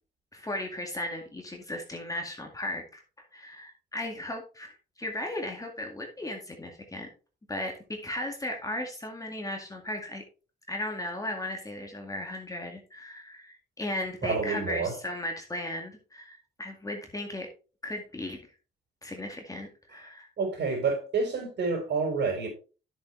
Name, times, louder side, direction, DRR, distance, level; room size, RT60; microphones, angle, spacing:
voice 1, 0.3-3.0 3.3-7.1 7.5-10.2 10.7-17.5 17.8-18.4 19.0-20.3, left 1 dB, 15° left, 2 dB, 2.1 m, -36 dB
voice 2, 14.2-14.9 20.4-22.5, right 4 dB, 65° right, 1 dB, 4.4 m, -28 dB
10.5 x 7.0 x 3.3 m, 0.34 s
cardioid pair, 90°, 20 cm